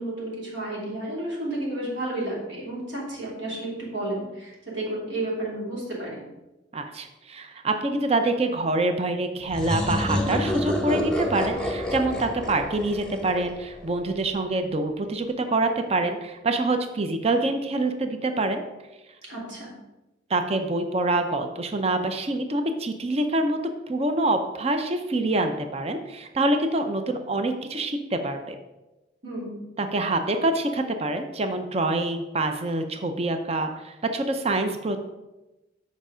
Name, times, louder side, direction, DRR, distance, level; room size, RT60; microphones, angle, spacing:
voice 1, 0.0-6.2 19.3-19.7 29.2-29.7, right 1 dB, 75° right, -4 dB, 3.0 m, -32 dB
voice 2, 6.7-18.6 20.3-23.6 23.9-28.6 29.8-35.0, right 2 dB, 35° right, 7 dB, 0.6 m, -26 dB
sound 1, 9.5-14.1, left 1 dB, 5° left, 0.9 m, -28 dB
7.9 x 5.2 x 5.0 m, 1.0 s
head